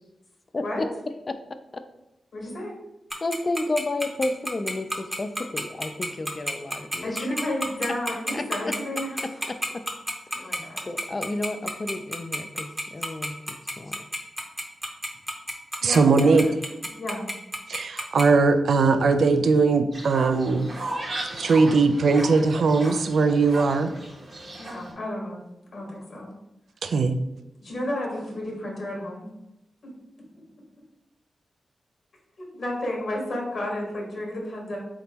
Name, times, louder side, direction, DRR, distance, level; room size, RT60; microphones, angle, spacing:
voice 1, 0.5-0.9 3.2-7.3 8.3-8.7 9.5-9.8 10.3-10.5 10.9-14.0, left 2 dB, 35° left, 9 dB, 0.4 m, -31 dB
voice 2, 2.3-2.7 7.0-9.3 10.4-10.9 15.8-16.4 17.0-17.2 24.6-25.4 25.7-26.3 27.6-29.3 29.8-29.9 32.4-34.8, left 1 dB, 65° left, -2 dB, 1.3 m, -32 dB
Tick-tock, 3.1-18.2, equal, 5° right, 0.7 m, -29 dB
voice 3, 15.8-16.5 17.7-20.7 21.4-23.9 26.8-27.2, right 4 dB, 75° right, 8 dB, 0.3 m, -20 dB
Fowl, 19.9-24.9, right 1 dB, 55° right, 1.1 m, -36 dB
3.9 x 3.5 x 2.9 m, 0.91 s
wide cardioid pair, 85°, 0 cm